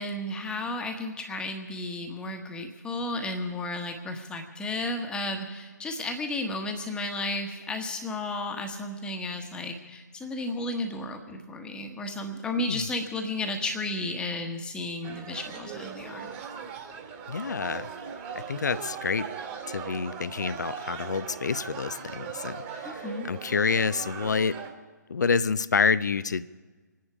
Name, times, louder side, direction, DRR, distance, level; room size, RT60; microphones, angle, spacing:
voice 1, 0.0-16.3 22.8-23.3, left 2 dB, 10° left, 4 dB, 1.3 m, -33 dB
sound 1, 15.0-24.7, right 7 dB, 35° right, 2.4 m, -39 dB
voice 2, 17.3-17.9 18.3-19.3 19.7-24.6 25.1-26.5, left 5 dB, 70° left, 16 dB, 0.6 m, -28 dB
26.0 x 10.5 x 4.9 m, 1.4 s
figure-of-eight pair, 130°, 10 cm